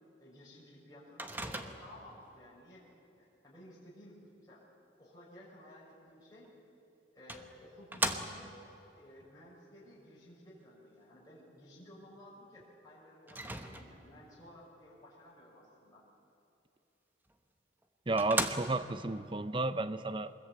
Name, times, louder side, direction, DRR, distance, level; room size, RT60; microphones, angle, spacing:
voice 1, 0.2-2.8 3.2-4.2 4.4-4.6 5.0-6.5 7.1-8.5 8.9-16.0, left 1 dB, 20° left, -8 dB, 6.5 m, -55 dB
Microwave oven, 1.2-2.1 6.4-6.5 7.3-8.7 13.3-14.2 17.3-17.4 17.8-17.9 18.2-19.0, right 2 dB, 10° right, 1.1 m, -37 dB
voice 2, 18.1-20.3, right 2 dB, 25° right, 12 dB, 0.7 m, -32 dB
24.5 x 21.0 x 8.8 m, 2.9 s
head